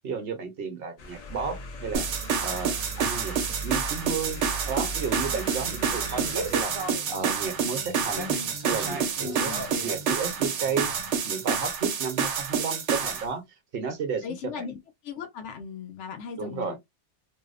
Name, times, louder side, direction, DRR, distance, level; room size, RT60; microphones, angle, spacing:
voice 1, 0.0-2.1 2.4-6.7 7.1-8.3 8.7-10.9 11.2-13.4 13.7-14.6 16.4-16.8, right 5 dB, 60° right, 0.8 m, -33 dB
sound 1, 1.0-6.6, right 1 dB, 60° left, 0.4 m, -38 dB
sound 2, 1.9-13.2, right 6 dB, 85° right, 0.9 m, -28 dB
sound 3, 4.4-11.2, right 1 dB, 35° right, 0.4 m, -39 dB
voice 2, 9.2-9.6 14.2-14.8 15.0-16.8, left 7 dB, 90° left, 0.9 m, -37 dB
2.6 x 2.0 x 2.3 m
omnidirectional pair, 1.2 m